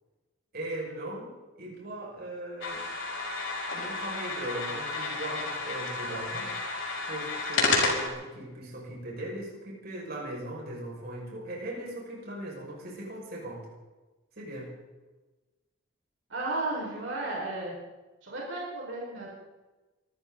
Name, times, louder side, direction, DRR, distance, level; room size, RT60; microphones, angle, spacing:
voice 1, 0.5-2.8 3.7-6.5 7.1-13.7 14.4-14.7, right 1 dB, 50° right, -3 dB, 5.9 m, -38 dB
sound 1, 2.6-8.1, left 3 dB, 70° left, 5.0 m, -31 dB
voice 2, 16.3-17.8 18.2-19.3, right 2 dB, 70° right, -3 dB, 5.2 m, -33 dB
25.0 x 14.0 x 4.0 m, 1.1 s
head